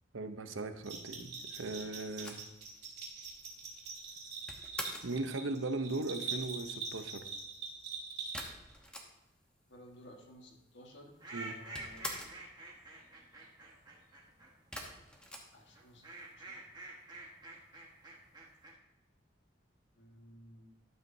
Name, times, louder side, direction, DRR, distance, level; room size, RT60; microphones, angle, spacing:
voice 1, 0.1-2.4 5.0-7.3 11.3-11.6, right 2 dB, 80° right, 9 dB, 0.8 m, -38 dB
Bell, 0.8-8.7, right 4 dB, 55° right, 2.6 m, -43 dB
sound 1, 2.2-5.2 8.3-9.5 9.8-9.9 10.1-10.9 11.1-12.5 14.7-16.2, equal, 5° left, 1.0 m, -45 dB
voice 2, 9.7-12.1 15.5-16.6 19.9-20.8, equal, 65° left, 1 dB, 1.6 m, -56 dB
sound 2, 11.2-14.5 15.7-18.7, right 2 dB, 20° right, 1.4 m, -48 dB
12.0 x 7.6 x 2.7 m, 1.0 s
head